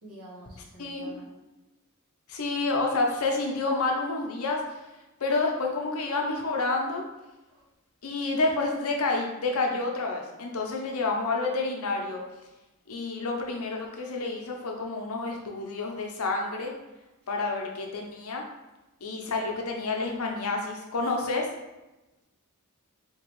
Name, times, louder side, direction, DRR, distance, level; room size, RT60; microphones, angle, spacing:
voice 1, 0.0-1.3 7.5-7.6, right 1 dB, 70° right, -5 dB, 1.2 m, -48 dB
voice 2, 0.8-1.1 2.3-4.6 5.2-7.0 8.0-12.2 12.9-16.7 17.3-18.4 19.0-21.5, left 3 dB, 70° left, 1 dB, 0.7 m, -29 dB
3.8 x 2.9 x 3.0 m, 1.0 s
head